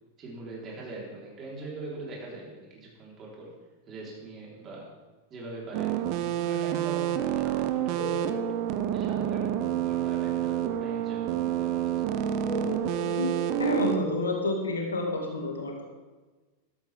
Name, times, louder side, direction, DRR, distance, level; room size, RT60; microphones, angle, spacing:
voice 1, 0.2-3.5 3.9-4.9 5.3-8.3 8.9-12.0, right 2 dB, 30° right, -4 dB, 4.3 m, -41 dB
sound 1, 5.7-14.0, right 11 dB, 45° right, 0.9 m, -28 dB
sound 2, 8.0-8.5 12.5-14.3, left 1 dB, 25° left, 2.3 m, -36 dB
voice 2, 13.6-15.8, left 2 dB, 70° left, 1 dB, 2.3 m, -29 dB
14.0 x 12.5 x 3.7 m, 1.2 s
figure-of-eight pair, 90°, 0 cm